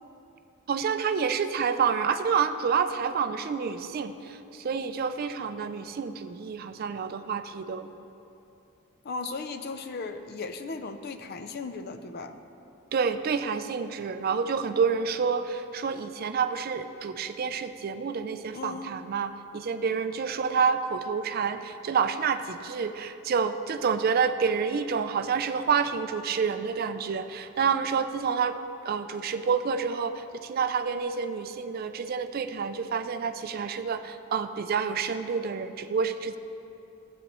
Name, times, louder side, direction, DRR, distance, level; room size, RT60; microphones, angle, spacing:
voice 1, 0.7-7.9 12.9-28.6 28.8-36.4, right 6 dB, 45° right, 10 dB, 0.3 m, -28 dB
voice 2, 9.0-12.4 18.5-18.9, left 4 dB, 50° left, 9 dB, 0.4 m, -36 dB
12.5 x 8.2 x 3.1 m, 2.8 s
head